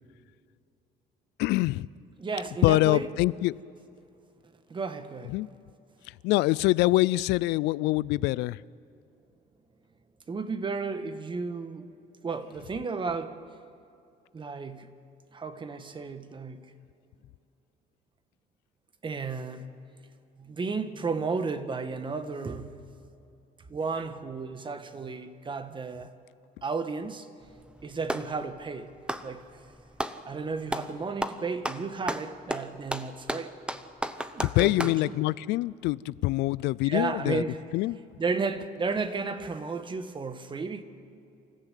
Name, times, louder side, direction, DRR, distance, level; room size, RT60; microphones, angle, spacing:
voice 1, 1.4-1.9 2.6-3.5 5.3-5.5 6.2-8.6 34.4-37.4 37.7-38.0, left 19 dB, 90° left, 0.4 m, -24 dB
voice 2, 2.2-3.1 4.7-5.4 10.3-11.9 12.2-13.4 14.3-14.9 15.3-16.6 19.0-19.7 20.4-22.9 23.7-26.1 26.6-27.3 27.8-28.9 29.2-29.4 30.2-33.5 34.3-35.2 36.8-37.6 38.2-40.8, right 4 dB, 30° right, 1.4 m, -33 dB
Clapping, 27.4-28.4 29.0-30.2 30.7-30.9 31.2-35.0, right 1 dB, 5° right, 0.9 m, -33 dB
26.5 x 14.5 x 8.3 m
cardioid pair, 110°, 17 cm